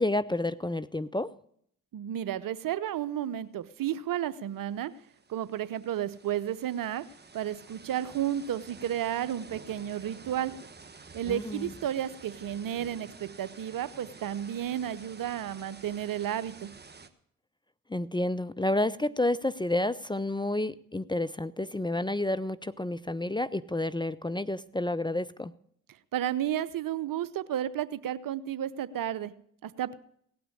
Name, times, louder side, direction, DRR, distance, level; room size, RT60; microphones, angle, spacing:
voice 1, 0.0-1.3 11.3-11.7 17.9-25.5, left 1 dB, 10° left, 15 dB, 0.6 m, -30 dB
voice 2, 1.9-4.9 5.3-7.0 7.3-10.5 11.1-16.7 26.1-29.3 29.6-29.9, right 11 dB, 60° right, 16 dB, 0.8 m, -32 dB
sound 1, 4.2-4.3 4.5-17.1, right 4 dB, 25° right, 1.4 m, -50 dB
17.5 x 6.0 x 9.8 m, 0.67 s
hypercardioid pair, 40°, 38 cm